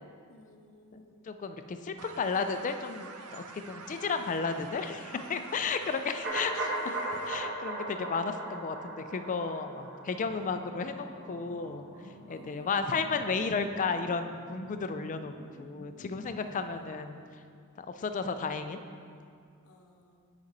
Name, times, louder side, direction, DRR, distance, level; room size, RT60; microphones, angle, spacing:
voice 1, 0.3-1.3 5.7-5.9 12.3-13.1 16.4-17.0 19.6-20.3, left 1 dB, 85° left, 2 dB, 0.6 m, -59 dB
voice 2, 1.3-7.0 7.3-11.8 12.3-15.3 15.6-17.2 17.8-18.8, left 4 dB, 35° left, 8 dB, 0.4 m, -33 dB
sound 1, 2.0-7.3, right 4 dB, 80° right, 0.5 m, -47 dB
sound 2, 6.2-12.1 12.4-12.5, right 2 dB, 55° right, 1.2 m, -37 dB
sound 3, 10.1-16.8, equal, 35° right, 1.8 m, -52 dB
7.9 x 5.2 x 4.0 m, 2.3 s
head